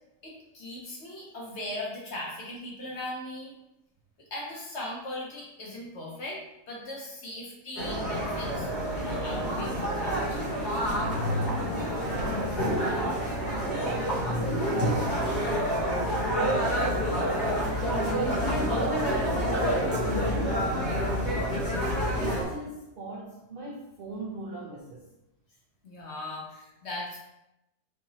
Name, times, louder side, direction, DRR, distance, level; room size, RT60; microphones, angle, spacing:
voice 1, 0.2-3.6 4.2-6.4 6.7-8.7 9.0-10.4 14.9-15.1 19.6-19.7 25.8-27.2, left 1 dB, 55° left, -2 dB, 0.8 m, -39 dB
sound 1, 7.8-22.4, equal, 85° left, 1.9 m, -28 dB
voice 2, 11.0-13.2 13.5-18.8 20.0-21.0 21.3-21.6 22.1-25.1, right 2 dB, 60° right, -3 dB, 0.5 m, -41 dB
4.6 x 2.8 x 2.9 m, 0.90 s
omnidirectional pair, 1.7 m